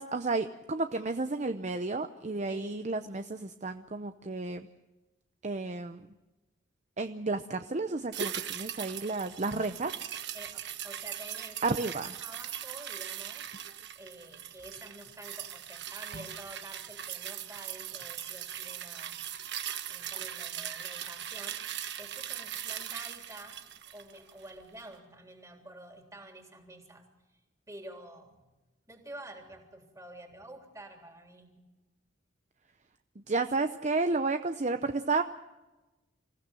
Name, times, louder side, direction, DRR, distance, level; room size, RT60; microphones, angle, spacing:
voice 1, 0.0-4.7 5.4-6.0 7.0-9.9 11.6-12.1 33.3-35.2, right 3 dB, 35° right, 9 dB, 0.7 m, -32 dB
voice 2, 2.5-2.8 10.3-13.6 14.0-19.2 19.9-23.6 23.9-27.1 27.7-28.5 28.9-31.5, right 1 dB, 15° right, 3 dB, 3.4 m, -49 dB
sound 1, 8.1-24.6 24.9-25.0, right 10 dB, 60° right, 1.3 m, -40 dB
27.0 x 16.0 x 7.6 m, 1.1 s
head